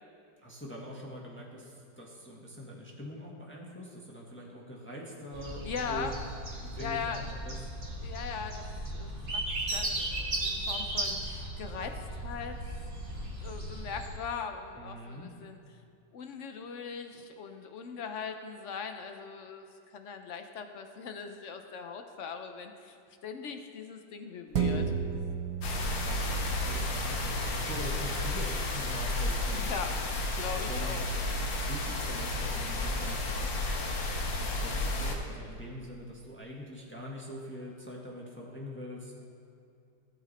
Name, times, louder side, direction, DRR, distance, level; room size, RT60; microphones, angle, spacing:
voice 1, 0.4-6.1 6.6-7.6 14.8-15.3 25.9-29.9 30.7-31.0 31.6-33.8 34.4-39.2, equal, 5° left, -3 dB, 1.2 m, -43 dB
sound 1, 5.3-14.1, right 1 dB, 30° right, 2.1 m, -36 dB
voice 2, 5.6-6.1 6.8-7.2 8.0-8.6 8.9-11.9 12.2-12.6 13.4-15.6 16.1-19.7 19.9-24.9 29.5-31.0, left 6 dB, 65° left, 6 dB, 0.7 m, -40 dB
sound 2, 24.5-33.4 33.8-33.9, right 6 dB, 55° right, 1.4 m, -37 dB
sound 3, 25.6-35.2, left 2 dB, 90° left, 1.9 m, -32 dB
16.5 x 7.2 x 4.2 m, 2.5 s
omnidirectional pair, 2.0 m